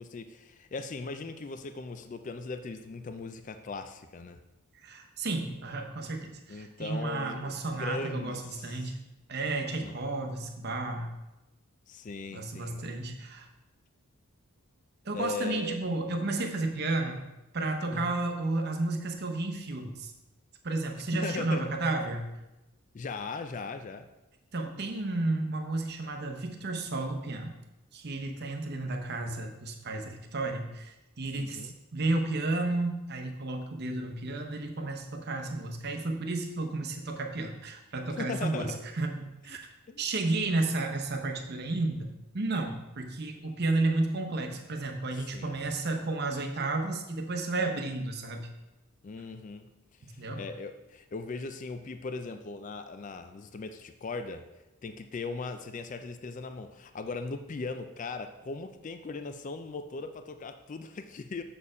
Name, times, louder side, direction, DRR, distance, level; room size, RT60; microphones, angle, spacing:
voice 1, 0.0-4.4 6.5-8.9 9.8-10.0 11.9-13.0 15.1-15.8 17.9-18.2 21.1-21.7 22.9-24.1 31.4-31.7 38.2-38.8 39.9-40.0 45.1-45.7 49.0-49.7 50.1-54.5 54.8-61.4, left 3 dB, 35° left, 9 dB, 0.3 m, -39 dB
voice 2, 4.8-9.0 9.3-11.1 12.3-13.5 15.0-17.2 17.5-20.1 20.6-22.2 24.5-27.5 27.9-39.2 39.4-39.6 40.0-42.1 42.3-48.5 50.0-50.4, right 2 dB, 45° right, 3 dB, 0.8 m, -32 dB
6.9 x 4.3 x 4.9 m, 1.0 s
head